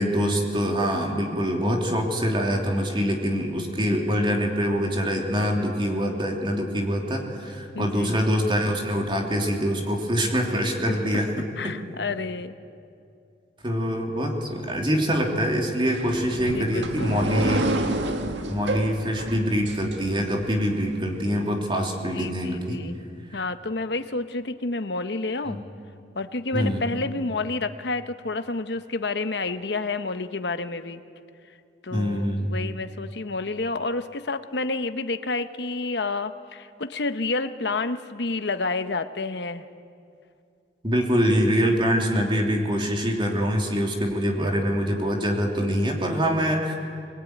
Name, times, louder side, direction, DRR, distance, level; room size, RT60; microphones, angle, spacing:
voice 1, 0.0-11.3 11.6-11.7 13.6-17.7 18.5-22.8 25.5-25.6 26.5-26.8 31.9-32.6 40.8-46.8, equal, 30° right, 1 dB, 3.0 m, -24 dB
voice 2, 7.7-8.2 10.8-11.0 11.6-12.6 16.5-17.3 22.1-23.0 23.3-25.6 26.1-31.0 31.8-39.7, left 3 dB, 70° left, 10 dB, 1.0 m, -29 dB
sound 1, 15.9-20.5, right 2 dB, 85° right, 1.8 m, -29 dB
22.5 x 20.5 x 9.4 m, 2.4 s
head